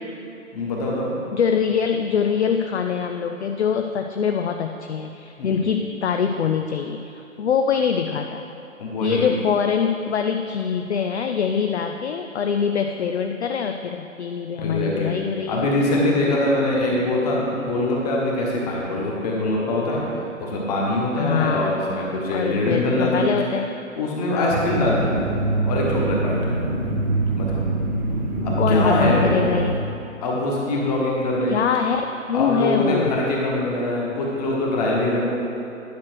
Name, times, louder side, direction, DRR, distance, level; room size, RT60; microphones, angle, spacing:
voice 1, 0.5-1.1 5.4-5.7 8.8-9.3 14.6-15.1 15.5-20.0 20.4-23.3 23.9-25.1 25.6-26.4 27.4-27.6 28.4-29.5 30.2-31.6 32.3-35.3, left 1 dB, 30° left, -3 dB, 1.6 m, -23 dB
voice 2, 1.3-8.4 9.0-15.7 21.2-21.7 22.3-23.7 24.3-24.7 28.6-29.7 31.5-33.2, left 7 dB, 55° left, 6 dB, 0.5 m, -24 dB
sound 1, 24.5-29.8, right 2 dB, 35° right, 0.8 m, -24 dB
10.5 x 6.1 x 4.6 m, 2.8 s
figure-of-eight pair, 145°, 40 cm